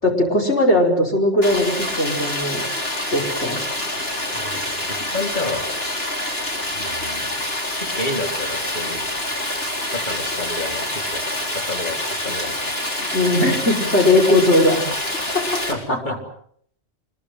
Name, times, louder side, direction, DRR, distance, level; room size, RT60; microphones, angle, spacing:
voice 1, 0.0-2.6 3.1-3.6 13.1-14.8 15.3-15.4 15.9-16.0, left 1 dB, 85° left, 1 dB, 5.4 m, -18 dB
Stream, 1.4-15.7, left 1 dB, 60° left, 4.9 m, -26 dB
voice 2, 4.3-5.7 6.7-7.3 7.8-9.0 9.9-12.8 15.7-16.2, left 2 dB, 45° left, 2 dB, 3.9 m, -30 dB
25.0 x 21.5 x 7.8 m, 0.65 s
omnidirectional pair, 1.1 m